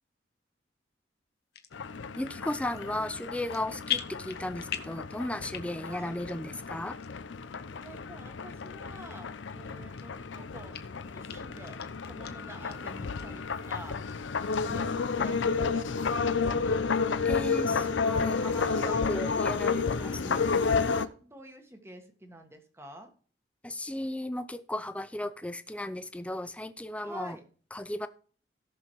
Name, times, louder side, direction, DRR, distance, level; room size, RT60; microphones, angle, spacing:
sound 1, 1.5-1.7 2.3-2.8 3.1-3.6 3.9-5.0 5.4-5.9 6.3-6.4 7.0-7.1 7.8-7.9 8.6-8.7 9.1-9.2 9.7-10.3 10.7-10.8 11.3-11.4 11.7-12.3 12.7-12.8 13.2-13.3 13.6-14.1 14.5-14.6, left 10 dB, 55° left, 1.0 m, -37 dB
sound 2, 1.7-21.1, left 5 dB, 85° left, 0.6 m, -31 dB
voice 1, 2.2-7.0 17.2-20.4 23.6-27.4 27.7-28.1, left 1 dB, 5° left, 12 dB, 0.5 m, -35 dB
voice 2, 5.8-6.2 7.8-10.8 11.1-11.8 12.0-14.0 14.5-16.8 18.5-19.2 19.8-23.1 27.0-27.4, right 1 dB, 15° right, 5 dB, 1.5 m, -48 dB
18.0 x 6.3 x 3.1 m, 0.43 s
head